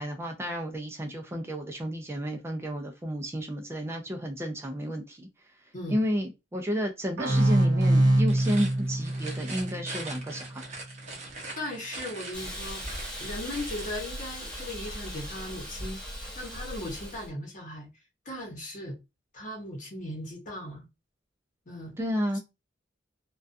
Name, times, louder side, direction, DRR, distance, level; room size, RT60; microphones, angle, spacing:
voice 1, 0.0-5.3 5.9-10.6 22.0-22.4, equal, 15° right, 0.3 m, -31 dB
sound 1, 7.2-10.6, right 1 dB, 85° right, 0.7 m, -25 dB
sound 2, 8.3-14.0, right 2 dB, 40° right, 0.7 m, -42 dB
voice 2, 11.6-12.9 13.2-17.9 18.2-19.0 19.3-20.9 21.7-22.0 22.3-22.4, left 1 dB, 45° left, 0.9 m, -38 dB
Hiss, 12.3-17.3, equal, 5° left, 0.9 m, -38 dB
2.3 x 2.2 x 2.5 m
head